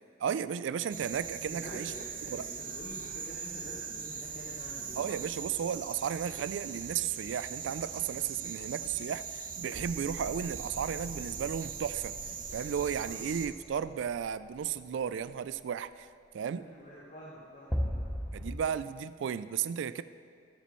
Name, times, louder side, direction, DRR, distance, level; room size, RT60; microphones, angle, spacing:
voice 1, 0.2-1.9 2.3-2.5 5.0-12.1 12.5-16.1 16.3-16.6 18.3-20.0, right 8 dB, 70° right, 14 dB, 0.3 m, -34 dB
sound 1, 0.9-13.5, right 6 dB, 45° right, 0.8 m, -41 dB
voice 2, 1.4-5.3 12.8-13.1 16.5-18.0, equal, 45° left, -6 dB, 1.4 m, -47 dB
sound 2, 9.7-15.2 17.7-18.6, equal, 5° left, 0.6 m, -39 dB
14.5 x 8.3 x 3.1 m, 2.3 s
head